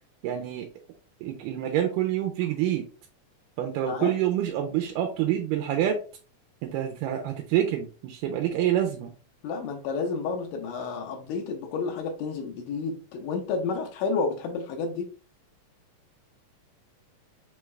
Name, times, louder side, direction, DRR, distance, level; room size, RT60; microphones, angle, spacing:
voice 1, 0.2-0.7 1.2-2.8 3.6-6.0 6.6-9.1, right 11 dB, 85° right, 2.2 m, -27 dB
voice 2, 3.8-4.1 9.4-15.1, left 4 dB, 80° left, 2.2 m, -30 dB
5.5 x 3.2 x 2.3 m
omnidirectional pair, 3.8 m